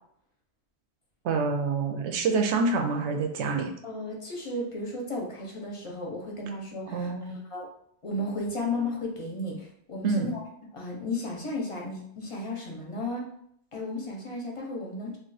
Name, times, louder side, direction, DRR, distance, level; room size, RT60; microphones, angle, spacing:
voice 1, 1.2-3.7 6.9-7.4 10.0-10.3, right 4 dB, 80° right, 4 dB, 0.8 m, -27 dB
voice 2, 3.8-7.1 7.5-7.7 8.0-10.4 10.7-13.2 13.7-15.2, left 2 dB, 35° left, -1 dB, 0.6 m, -34 dB
2.4 x 2.4 x 3.9 m, 0.70 s
omnidirectional pair, 1.2 m